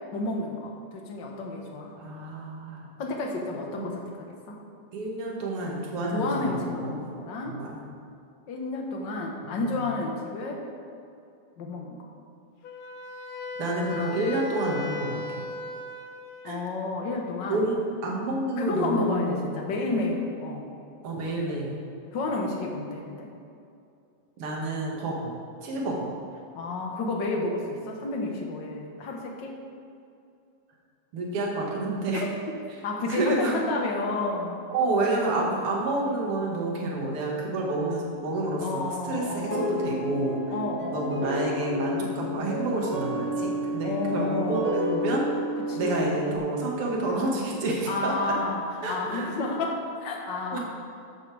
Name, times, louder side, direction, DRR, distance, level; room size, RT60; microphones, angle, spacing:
voice 1, 0.1-1.9 3.0-4.6 6.1-7.6 8.5-10.6 11.6-12.0 16.4-17.7 18.6-20.7 22.1-23.3 26.5-29.6 32.1-32.3 32.8-34.6 38.6-39.9 40.5-41.3 43.8-44.7 45.7-46.3 47.9-48.6 48.9-50.6, left 2 dB, 45° left, 0 dB, 1.6 m, -31 dB
voice 2, 1.9-2.9 3.7-3.9 4.9-6.9 7.5-7.8 9.4-9.8 13.6-15.4 16.4-16.6 17.5-17.8 18.0-19.5 21.0-21.8 24.4-26.1 31.1-32.2 33.1-33.6 34.7-40.4 40.9-45.3 45.8-48.3 48.8-49.3 50.5-50.6, right 2 dB, 50° right, -2 dB, 2.6 m, -29 dB
Wind instrument woodwind instrument, 12.6-16.7, left 4 dB, 70° left, 1.9 m, -37 dB
sound 1, 39.5-46.4, equal, 20° right, 1.0 m, -31 dB
13.0 x 12.0 x 3.5 m, 2.5 s
omnidirectional pair, 3.6 m